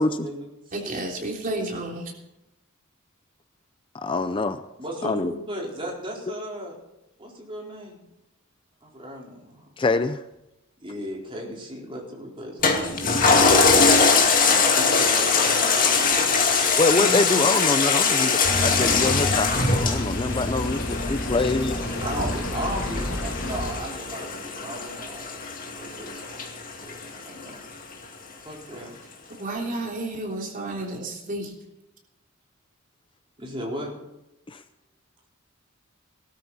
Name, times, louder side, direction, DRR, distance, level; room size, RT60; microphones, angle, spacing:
voice 1, 0.0-1.1 4.8-6.8 7.2-8.0 8.8-9.7 10.8-12.8 14.4-16.1 21.3-21.5 22.0-25.3 25.7-26.4 26.7-27.6 28.4-28.9 30.7-30.8 33.4-33.9, equal, 25° right, -2 dB, 4.4 m, -36 dB
voice 2, 0.7-2.0 17.0-17.4 29.4-31.5, right 1 dB, 40° right, -1 dB, 3.5 m, -31 dB
voice 3, 3.9-4.6 5.0-5.3 9.8-10.2 16.8-21.8 34.5-34.6, left 3 dB, 25° left, 11 dB, 0.5 m, -25 dB
Toilet flush, 12.6-27.4 27.9-28.0, left 4 dB, 40° left, 2.3 m, -22 dB
sound 1, 18.4-23.7, left 1 dB, 65° left, 3.2 m, -29 dB
19.0 x 13.0 x 4.3 m, 0.90 s
head